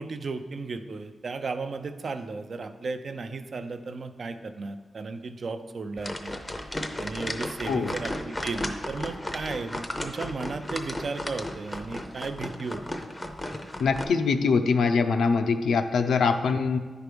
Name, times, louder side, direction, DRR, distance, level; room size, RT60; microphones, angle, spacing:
voice 1, 0.0-6.3 7.0-12.8 16.4-16.5, right 4 dB, 45° right, 9 dB, 0.5 m, -35 dB
sound 1, 6.0-14.0, left 1 dB, 15° left, 0.6 m, -35 dB
voice 2, 13.8-16.8, left 5 dB, 85° left, 7 dB, 0.6 m, -23 dB
10.0 x 4.7 x 5.1 m, 1.4 s
wide cardioid pair, 160°, 0 cm